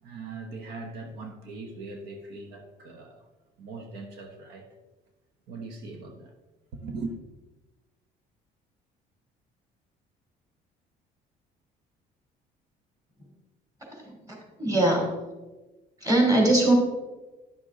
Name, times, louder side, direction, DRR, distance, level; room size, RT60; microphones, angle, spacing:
voice 1, 0.0-3.3 3.6-4.7 5.5-6.3 6.7-7.2, right 3 dB, 85° right, 4 dB, 1.0 m, -40 dB
voice 2, 13.9-15.1 16.0-16.7, right 2 dB, 20° right, 0 dB, 2.9 m, -22 dB
10.5 x 6.5 x 3.7 m, 1.1 s
cardioid pair, 110°, 17 cm